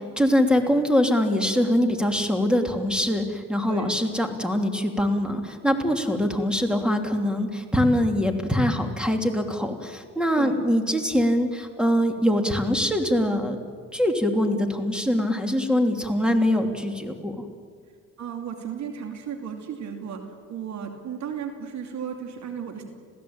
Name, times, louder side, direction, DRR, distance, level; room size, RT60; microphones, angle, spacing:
voice 1, 0.0-13.6 13.9-17.4, equal, 5° right, 5 dB, 3.0 m, -23 dB
voice 2, 18.2-20.2 20.5-22.8, right 7 dB, 65° right, 4 dB, 2.7 m, -34 dB
27.0 x 16.5 x 8.8 m, 2.1 s
cardioid pair, 90°, 30 cm